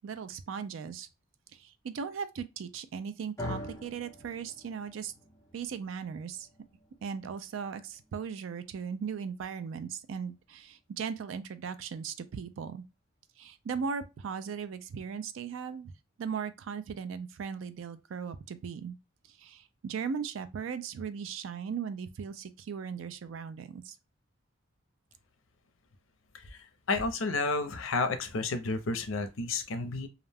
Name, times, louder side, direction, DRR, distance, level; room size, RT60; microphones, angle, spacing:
voice 1, 0.0-1.1 1.5-5.1 5.5-6.5 7.0-12.8 13.4-15.9 16.2-19.0 19.3-24.0, right 6 dB, 70° right, 0.3 m, -38 dB
sound 1, 3.4-11.6, left 1 dB, 15° left, 0.5 m, -47 dB
voice 2, 26.9-30.1, left 3 dB, 70° left, 0.5 m, -31 dB
2.4 x 2.1 x 3.3 m
head